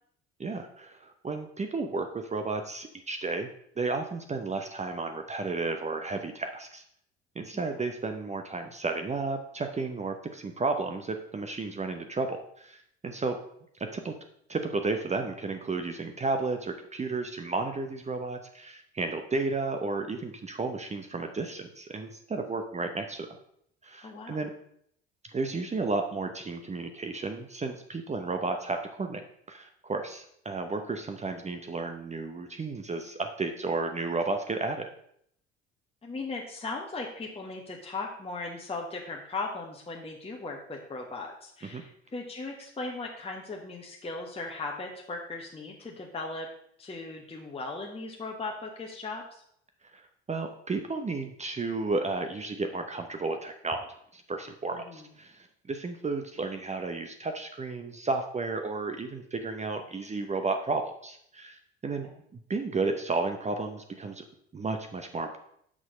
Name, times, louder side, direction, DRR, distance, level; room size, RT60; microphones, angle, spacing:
voice 1, 0.4-3.5 3.8-6.8 7.4-13.4 13.8-14.1 14.5-23.4 23.8-24.5 25.3-34.9 41.7-41.8 49.9-50.0 50.3-53.9 54.1-64.2 64.5-65.4, right 3 dB, 20° right, 6 dB, 0.8 m, -33 dB
voice 2, 24.0-24.4 36.0-46.5 46.8-49.4 54.7-55.0 62.0-62.1, left 3 dB, 15° left, 0 dB, 1.3 m, -38 dB
6.2 x 6.1 x 5.3 m, 0.69 s
figure-of-eight pair, 60°, 33 cm